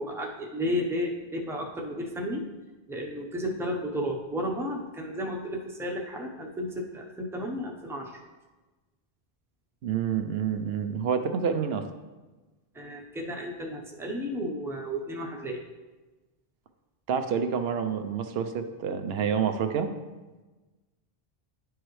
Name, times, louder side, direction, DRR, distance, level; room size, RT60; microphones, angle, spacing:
voice 1, 0.0-2.4 2.9-8.2 12.7-15.6, equal, 5° right, 0 dB, 0.7 m, -33 dB
voice 2, 9.8-11.9 17.1-19.9, right 7 dB, 75° right, 8 dB, 0.8 m, -28 dB
11.0 x 4.7 x 3.1 m, 1.2 s
omnidirectional pair, 1.0 m